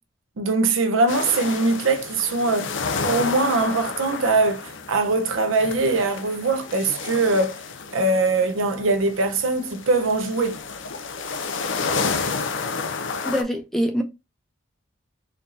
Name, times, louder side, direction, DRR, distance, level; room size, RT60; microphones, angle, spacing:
voice 1, 0.4-2.7 3.1-7.6 7.9-10.6, right 3 dB, 80° right, 0.6 m, -22 dB
sound 1, 1.1-13.4, left 4 dB, 70° left, 0.5 m, -31 dB
voice 2, 13.2-14.0, equal, ahead, 0.4 m, -24 dB
4.4 x 2.5 x 2.7 m
head